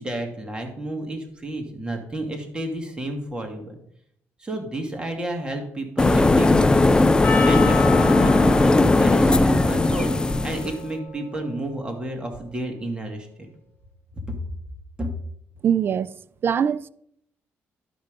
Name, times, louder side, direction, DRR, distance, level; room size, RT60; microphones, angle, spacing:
voice 1, 0.0-3.8 4.4-6.8 7.2-10.1 10.4-13.3 14.2-14.4 15.0-15.1, right 1 dB, 20° right, 2.2 m, -31 dB
sound 1, 6.0-10.8, left 2 dB, 15° left, 0.4 m, -18 dB
Percussion, 7.2-11.8, left 6 dB, 35° left, 2.2 m, -33 dB
voice 2, 15.6-16.1 16.4-16.9, right 8 dB, 50° right, 0.4 m, -22 dB
12.0 x 5.3 x 5.2 m
cardioid pair, 90°, 5 cm